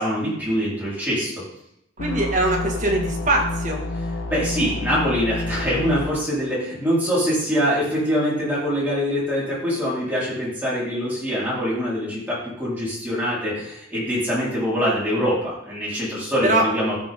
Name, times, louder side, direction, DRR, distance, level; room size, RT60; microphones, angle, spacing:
voice 1, 0.0-1.4 4.3-17.0, equal, 10° right, -8 dB, 4.6 m, -24 dB
sound 1, 2.0-6.1, left 2 dB, 80° left, 1.5 m, -29 dB
voice 2, 2.0-3.8 16.4-16.6, right 2 dB, 40° right, 0 dB, 2.1 m, -22 dB
14.0 x 6.3 x 3.9 m, 0.78 s
head